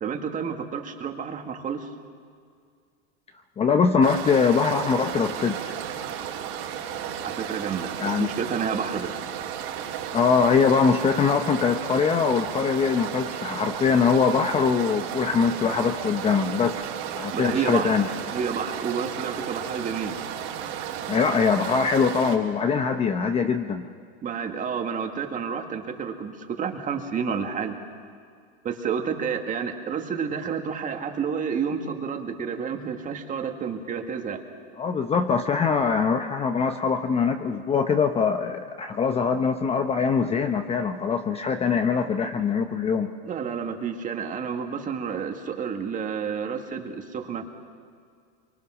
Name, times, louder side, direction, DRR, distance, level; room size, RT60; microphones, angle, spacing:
voice 1, 0.0-1.9 7.2-9.1 17.3-18.0 18.3-20.2 24.2-27.7 28.6-34.4 43.2-47.4, right 6 dB, 25° right, 5 dB, 1.9 m, -30 dB
voice 2, 3.6-5.7 8.0-8.3 10.1-16.8 17.1-18.1 21.1-23.8 34.8-43.1, left 5 dB, 20° left, 7 dB, 0.8 m, -23 dB
sound 1, 4.0-22.4, right 9 dB, 60° right, 3.7 m, -34 dB
24.0 x 23.5 x 6.3 m, 2.1 s
supercardioid pair, 140°, 32 cm